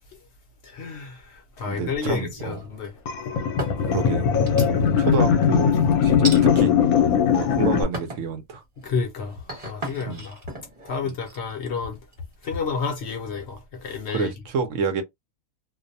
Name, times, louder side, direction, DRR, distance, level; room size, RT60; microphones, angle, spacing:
voice 1, 0.7-1.2 1.6-2.9 8.8-9.4 9.6-10.4 10.9-12.0 12.4-14.3, left 5 dB, 60° left, 0.8 m, -30 dB
voice 2, 1.7-2.6 3.8-4.2 5.0-6.7 7.3-8.6 10.0-10.2 11.0-11.2 14.1-15.0, right 5 dB, 70° right, 0.9 m, -28 dB
sound 1, 2.1-2.8 3.3-4.0 4.5-5.1 6.2-6.4 7.1-7.5 7.9-8.3 8.8-12.4, right 1 dB, 30° right, 1.1 m, -36 dB
sound 2, 3.1-7.8, left 7 dB, 85° left, 1.0 m, -20 dB
2.5 x 2.1 x 2.5 m
omnidirectional pair, 1.5 m